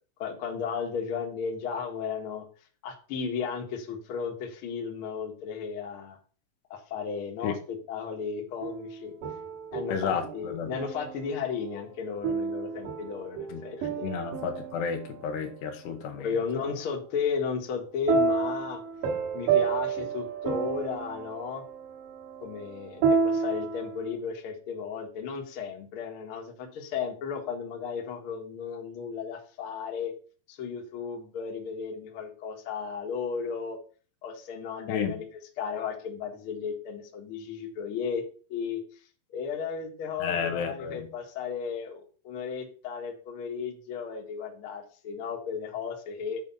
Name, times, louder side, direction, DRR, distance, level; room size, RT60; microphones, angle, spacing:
voice 1, 0.2-2.5 2.8-6.2 6.7-9.1 9.7-14.2 16.2-18.8 19.3-21.6 22.4-30.1 30.5-33.8 34.2-35.2 35.6-38.2 38.5-38.8 39.3-46.4, left 6 dB, 50° left, 1 dB, 1.7 m, -34 dB
sound 1, 8.6-11.3 12.2-15.6 18.1-24.1, right 5 dB, 55° right, 2.7 m, -30 dB
voice 2, 9.9-10.7 13.5-13.6 14.0-16.3 34.9-35.2 40.2-41.1, left 6 dB, 85° left, 5 dB, 3.2 m, -32 dB
8.3 x 5.2 x 5.6 m, 0.40 s
omnidirectional pair, 4.8 m